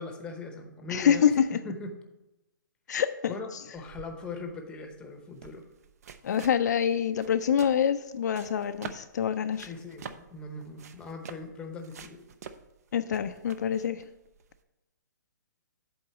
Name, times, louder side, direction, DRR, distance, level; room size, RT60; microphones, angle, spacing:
voice 1, 0.0-1.2 1.6-1.9 3.3-5.6 9.6-12.2, left 3 dB, 10° left, 4 dB, 0.8 m, -40 dB
voice 2, 0.9-1.6 2.9-3.3 6.2-9.7 12.9-14.0, left 8 dB, 60° left, 9 dB, 0.4 m, -26 dB
sound 1, 3.7-14.6, right 7 dB, 50° right, 0.5 m, -47 dB
7.8 x 3.9 x 6.8 m, 0.97 s
hypercardioid pair, 155°, 11 cm